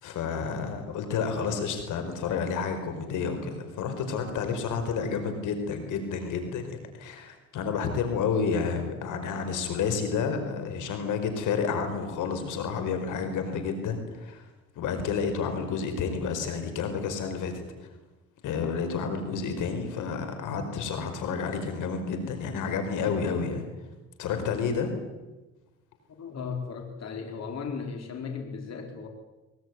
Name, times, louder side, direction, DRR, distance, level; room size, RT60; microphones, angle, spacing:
voice 1, 0.0-14.5 14.7-17.9 18.4-23.6 24.2-24.9, left 5 dB, 85° left, 7 dB, 5.0 m, -30 dB
voice 2, 26.2-29.1, left 5 dB, 60° left, 4 dB, 4.4 m, -36 dB
22.5 x 22.5 x 9.6 m, 1.1 s
cardioid pair, 90°, 30 cm